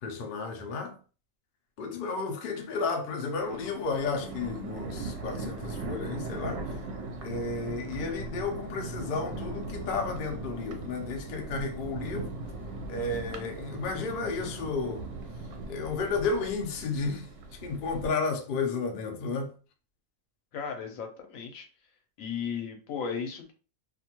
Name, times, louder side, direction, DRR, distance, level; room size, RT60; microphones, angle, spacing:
voice 1, 0.0-1.0 1.8-6.6 7.2-12.3 12.9-15.0 15.7-17.3 17.6-19.6, left 4 dB, 55° left, 0.6 m, -32 dB
Thunder, 3.3-18.1, right 3 dB, 70° right, 0.9 m, -39 dB
voice 2, 20.5-21.7 22.2-23.5, left 6 dB, 85° left, 1.1 m, -35 dB
2.5 x 2.2 x 2.9 m
omnidirectional pair, 1.4 m